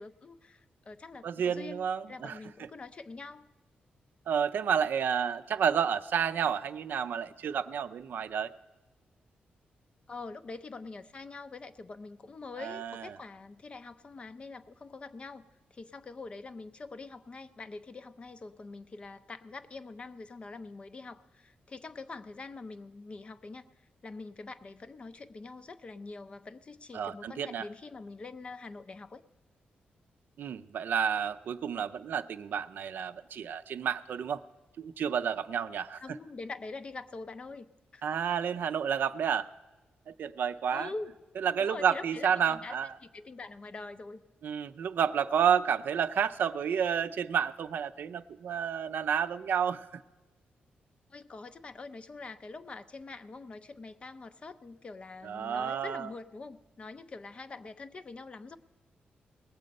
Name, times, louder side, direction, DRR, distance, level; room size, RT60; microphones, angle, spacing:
voice 1, 0.0-3.5 10.1-15.4 15.7-29.2 36.0-37.7 37.9-38.0 40.7-41.1 41.6-42.8 43.0-44.2 51.1-58.6, left 3 dB, 30° left, 12 dB, 0.5 m, -44 dB
voice 2, 1.2-2.4 4.3-8.5 12.6-13.1 26.9-27.7 30.4-34.4 34.8-36.2 38.0-39.5 40.1-40.9 41.4-42.9 44.4-50.0 55.2-56.1, right 7 dB, 65° right, 11 dB, 0.4 m, -30 dB
19.5 x 7.6 x 5.2 m, 1.2 s
wide cardioid pair, 145°, 4 cm